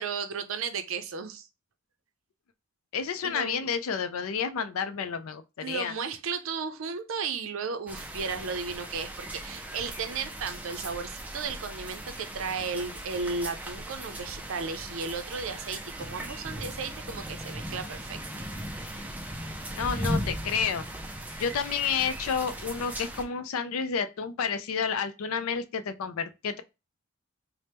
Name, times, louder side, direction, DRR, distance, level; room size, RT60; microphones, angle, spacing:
voice 1, 0.0-1.5 3.2-3.7 5.6-18.2, right 5 dB, 70° right, 0.5 m, -34 dB
voice 2, 2.9-5.9 19.8-20.9 21.4-26.6, left 6 dB, 75° left, 0.4 m, -30 dB
sound 1, 7.9-23.2, right 1 dB, 5° right, 0.3 m, -38 dB
3.3 x 2.1 x 4.2 m
head